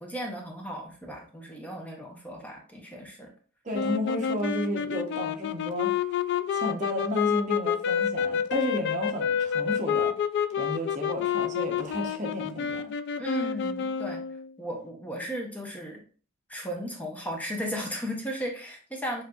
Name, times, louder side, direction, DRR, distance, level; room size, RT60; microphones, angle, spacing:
voice 1, 0.0-3.3 13.2-14.2 14.6-16.0 16.5-19.2, equal, 10° left, 0.8 m, -35 dB
voice 2, 3.6-5.9 6.5-10.1 10.6-12.9, left 1 dB, 35° right, 0.9 m, -32 dB
sound 1, 3.7-14.5, left 8 dB, 55° left, 0.3 m, -29 dB
7.2 x 2.6 x 2.4 m
head